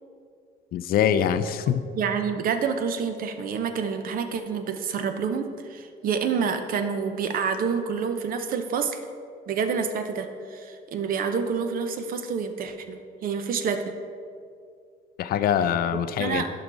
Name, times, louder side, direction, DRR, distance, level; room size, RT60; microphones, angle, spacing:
voice 1, 0.7-1.8 15.2-16.4, left 9 dB, 60° left, 12 dB, 0.5 m, -23 dB
voice 2, 1.9-9.0 9.5-13.8 15.9-16.5, right 6 dB, 55° right, 7 dB, 0.7 m, -28 dB
11.0 x 4.9 x 3.9 m, 2.3 s
cardioid pair, 110°, 17 cm